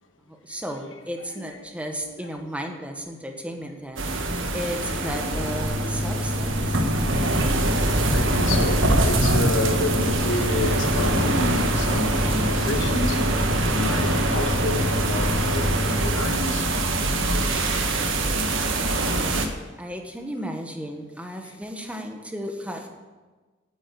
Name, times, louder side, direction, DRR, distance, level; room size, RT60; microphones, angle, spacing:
voice 1, 0.3-7.1 19.2-22.9, equal, 5° right, 1.1 m, -34 dB
voice 2, 1.3-1.7 1.9-2.4 6.7-6.8 8.1-17.8 21.4-21.5, left 2 dB, 65° left, 1.3 m, -31 dB
sound 1, 4.0-19.5, right 1 dB, 70° right, 1.3 m, -24 dB
sound 2, 5.3-16.1, left 1 dB, 40° left, 2.8 m, -29 dB
9.0 x 8.9 x 8.2 m
head